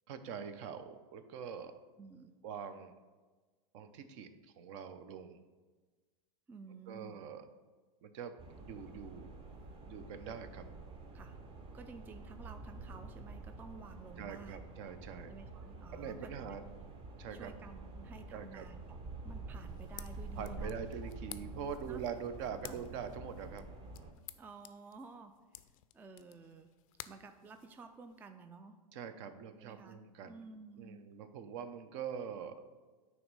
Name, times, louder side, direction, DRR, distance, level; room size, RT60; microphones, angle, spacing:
voice 1, 0.1-1.7 2.4-2.9 3.7-5.4 6.9-7.5 8.0-8.3 8.6-9.3 9.9-10.6 14.2-15.3 15.9-16.7 17.2-17.5 18.3-18.6 20.4-23.6 28.9-30.3 30.8-32.6, right 7 dB, 55° right, 10 dB, 0.7 m, -44 dB
voice 2, 2.0-2.4 6.5-7.2 11.1-11.4 11.7-14.7 15.3-16.6 17.3-19.0 19.2-21.1 21.9-22.3 22.6-22.9 24.4-25.6 25.9-26.7 27.1-28.8 29.6-31.0, right 4 dB, 10° right, 7 dB, 0.3 m, -53 dB
sound 1, 8.4-24.1, right 3 dB, 30° right, 0.9 m, -48 dB
sound 2, 19.6-28.2, left 14 dB, 65° left, 0.4 m, -54 dB
9.3 x 3.1 x 5.3 m, 1.3 s
hypercardioid pair, 125°, 19 cm